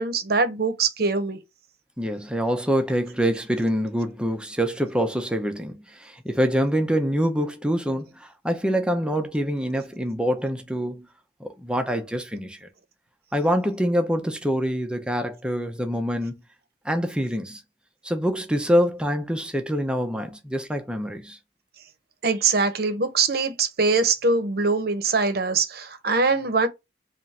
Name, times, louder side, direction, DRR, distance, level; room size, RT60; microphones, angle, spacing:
voice 1, 0.0-1.4 22.2-26.7, right 4 dB, 55° right, 0.8 m, -23 dB
voice 2, 2.0-11.1 11.4-12.7 13.3-16.3 16.8-17.6 18.0-21.4, equal, 5° right, 0.6 m, -25 dB
3.5 x 2.5 x 4.1 m
head